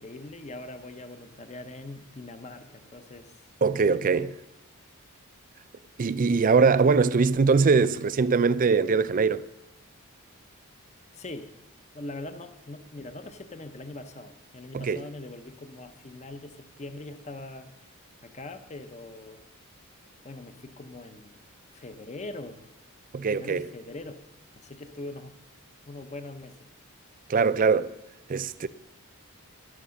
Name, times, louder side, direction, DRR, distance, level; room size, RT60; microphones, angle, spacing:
voice 1, 0.0-3.4 3.8-4.3 11.1-11.5 11.9-17.7 18.2-19.4 20.2-21.4 21.7-22.7 23.3-24.2 24.5-25.3 25.9-26.6, left 2 dB, 30° left, 0.8 m, -42 dB
voice 2, 3.6-4.3 6.0-9.4 14.7-15.0 23.1-23.7 27.3-27.9 28.3-28.7, right 4 dB, 40° right, 0.4 m, -22 dB
12.5 x 11.5 x 6.4 m
head